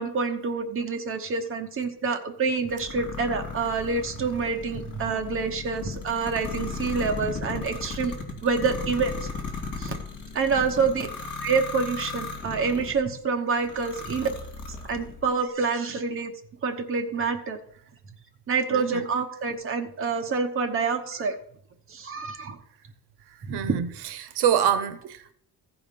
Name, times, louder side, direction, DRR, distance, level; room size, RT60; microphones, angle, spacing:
voice 1, 0.0-8.1 8.4-9.3 9.7-9.9 10.3-11.1 11.4-14.3 14.9-16.3 16.6-17.6 18.5-21.3 21.9-22.6 23.4-23.8, right 5 dB, 35° right, 1.0 m, -27 dB
sound 1, 2.7-13.0 13.6-15.2, left 4 dB, 50° left, 2.5 m, -36 dB
voice 2, 18.7-19.1 23.5-25.3, right 9 dB, 85° right, 0.8 m, -26 dB
15.0 x 5.0 x 5.2 m
cardioid pair, 170°, 39 cm